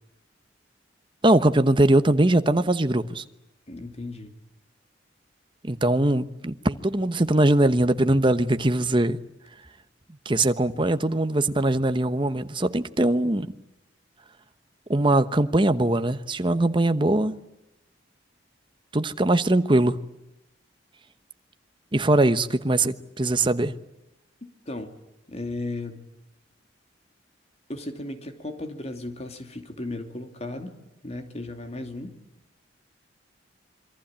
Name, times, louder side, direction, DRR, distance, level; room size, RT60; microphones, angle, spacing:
voice 1, 1.2-3.2 5.6-9.2 10.2-13.5 14.9-17.4 18.9-20.0 21.9-23.7, right 1 dB, 25° right, 1.1 m, -21 dB
voice 2, 3.7-4.3 24.4-24.9 25.3-26.0 27.7-32.2, left 2 dB, 35° left, 2.7 m, -35 dB
27.0 x 23.5 x 8.8 m
head